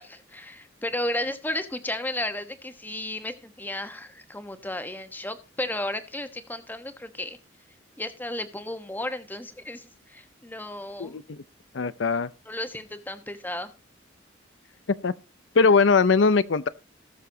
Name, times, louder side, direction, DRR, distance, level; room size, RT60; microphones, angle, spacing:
voice 1, 0.0-7.4 8.0-11.2 12.4-13.7, left 1 dB, 10° left, 1.2 m, -33 dB
voice 2, 11.0-11.4 11.7-12.3 15.0-15.1 15.6-16.7, left 4 dB, 75° left, 0.6 m, -20 dB
18.5 x 6.9 x 2.8 m
head